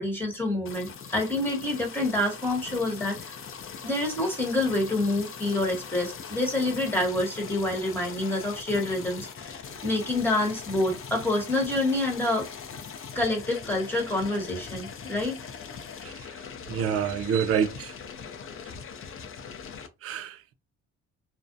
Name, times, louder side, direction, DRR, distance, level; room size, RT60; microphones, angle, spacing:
voice 1, 0.0-3.4 3.8-9.3 9.8-12.5 13.1-15.4, left 2 dB, 5° left, 1.2 m, -27 dB
sound 1, 0.6-19.9, left 6 dB, 45° left, 0.5 m, -41 dB
voice 2, 16.7-17.9 20.0-20.5, right 8 dB, 50° right, 0.4 m, -28 dB
2.4 x 2.1 x 2.6 m
cardioid pair, 90°, 30 cm